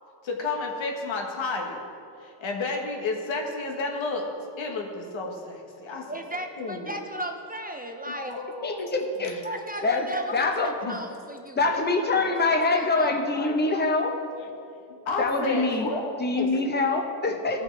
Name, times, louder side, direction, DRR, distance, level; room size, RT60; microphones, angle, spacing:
voice 1, 0.2-1.8 2.2-6.9 8.0-9.0 9.2-9.4 10.8-11.0 13.0-14.0 14.9-16.5 17.5-17.6, left 3 dB, 85° left, 2 dB, 1.4 m, -32 dB
voice 2, 6.1-8.4 9.4-10.5 10.9-11.8 12.3-12.5 12.7-13.2, right 1 dB, 20° right, 4 dB, 0.4 m, -36 dB
voice 3, 8.6-9.3 9.8-10.7 11.6-14.2 15.2-15.9 16.2-17.6, left 3 dB, 20° left, 3 dB, 0.8 m, -25 dB
15.5 x 6.0 x 3.3 m, 2.6 s
wide cardioid pair, 140°, 45 cm